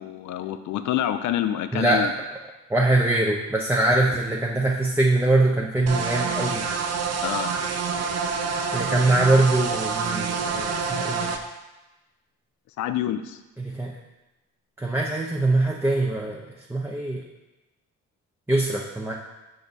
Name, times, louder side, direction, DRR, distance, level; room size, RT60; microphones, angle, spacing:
voice 1, 0.0-2.1 7.2-7.5 12.8-13.4, left 11 dB, 70° left, 11 dB, 0.5 m, -27 dB
voice 2, 1.7-2.1 2.7-6.6 8.7-11.3 13.6-13.9 14.8-17.2 18.5-19.1, right 2 dB, 5° right, -3 dB, 0.7 m, -23 dB
sound 1, 5.9-11.4, right 5 dB, 55° right, 0.7 m, -27 dB
5.7 x 5.1 x 4.1 m, 1.0 s
cardioid pair, 90°, 30 cm